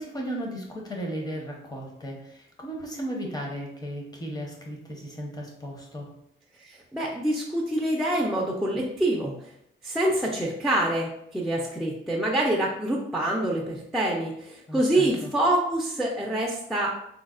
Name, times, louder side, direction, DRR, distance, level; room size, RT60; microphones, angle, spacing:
voice 1, 0.0-6.1 14.7-15.3, equal, 20° left, -1 dB, 0.7 m, -35 dB
voice 2, 6.6-9.5 9.8-17.0, right 1 dB, ahead, -2 dB, 0.3 m, -26 dB
3.9 x 2.1 x 2.4 m, 0.76 s
cardioid pair, 120°, 21 cm